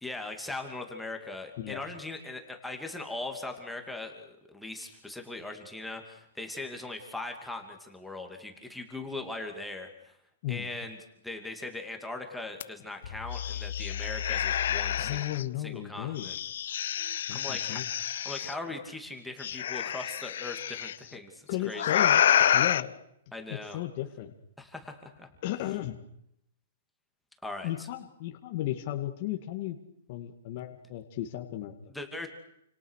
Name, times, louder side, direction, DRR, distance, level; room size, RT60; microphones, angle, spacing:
voice 1, 0.0-10.1 10.5-11.0 11.2-15.2 15.6-16.4 16.7-16.9 17.3-22.1 23.3-23.8 24.6-25.3 27.4-27.9 31.9-32.3, left 2 dB, ahead, 2 dB, 2.7 m, -40 dB
sound 1, 12.6-12.7 13.0-15.4 16.2-18.5 19.4-20.9 21.7-22.8, left 10 dB, 50° left, 1.0 m, -28 dB
voice 2, 15.0-16.3 17.3-17.8 21.5-22.9 23.5-24.3 25.4-26.0 27.6-29.8 30.1-31.7, left 14 dB, 30° left, 4 dB, 2.2 m, -35 dB
29.5 x 27.5 x 6.6 m, 0.76 s
hypercardioid pair, 180°, 0 cm